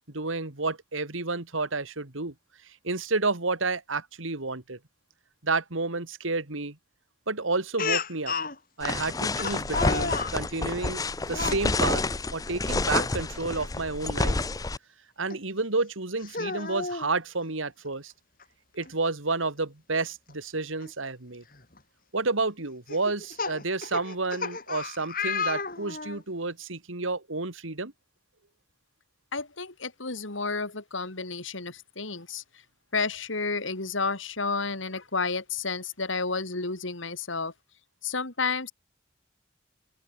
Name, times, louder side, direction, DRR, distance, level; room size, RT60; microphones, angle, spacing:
voice 1, 0.1-2.3 2.8-4.8 5.4-6.8 7.3-8.3 8.8-12.0 12.3-14.4 15.2-18.1 18.7-21.4 22.1-27.9, right 3 dB, 85° right, 2.4 m, -30 dB
Speech, 7.8-8.6 9.4-10.4 11.3-11.6 12.9-13.1 13.5-13.6 15.3-15.4 16.2-17.1 18.4-18.5 18.8-18.9 20.8-20.9 21.5-21.8 22.9-26.2, left 4 dB, 45° left, 5.5 m, -32 dB
sound 1, 8.8-14.8, left 3 dB, 20° left, 0.5 m, -29 dB
voice 2, 29.3-32.4 32.9-37.5 38.0-38.7, left 4 dB, 80° left, 3.0 m, -31 dB
open air
head